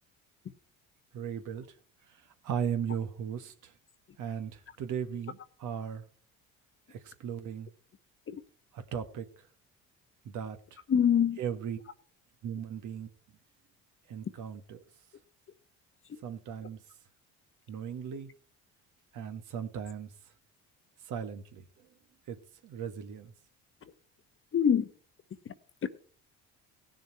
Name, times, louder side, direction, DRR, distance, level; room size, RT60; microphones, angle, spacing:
voice 1, 1.1-1.7 2.4-3.7 4.2-6.0 6.9-7.7 8.7-9.3 10.2-10.6 11.4-11.8 12.4-13.1 14.1-14.8 16.2-16.8 17.7-18.3 19.1-20.1 21.0-21.6 22.3-22.4 22.6-23.3, right 8 dB, 65° right, 1.6 m, -37 dB
voice 2, 10.9-11.4 24.5-24.9 25.8-25.9, left 8 dB, 40° left, 1.1 m, -24 dB
17.0 x 6.8 x 4.6 m
supercardioid pair, 80°, 33 cm